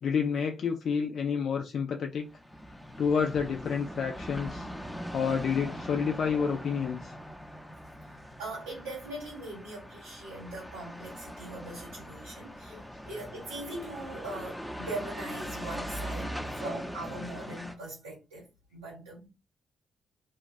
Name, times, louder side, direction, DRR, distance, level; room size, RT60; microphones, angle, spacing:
voice 1, 0.0-2.3 3.0-4.7 5.1-7.1 12.7-12.8, left 6 dB, 60° left, 0.3 m, -29 dB
sound 1, 2.1-17.7, equal, 5° left, 0.6 m, -41 dB
voice 2, 8.2-19.3, right 2 dB, 90° right, 1.6 m, -41 dB
2.9 x 2.3 x 2.4 m
hypercardioid pair, 40°, 0 cm